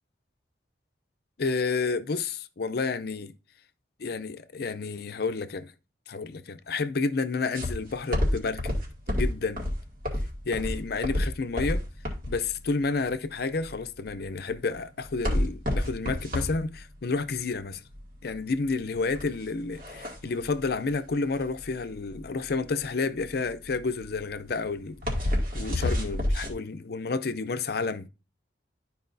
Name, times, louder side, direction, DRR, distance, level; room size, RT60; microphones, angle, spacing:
voice 1, 1.4-3.3 4.0-5.7 6.1-8.8 9.1-9.7 10.5-11.8 12.3-17.8 18.2-25.0 25.5-28.1, left 4 dB, 60° left, 0.5 m, -30 dB
sound 1, 7.5-26.5, left 1 dB, 50° right, 2.2 m, -30 dB
12.0 x 4.7 x 2.6 m
head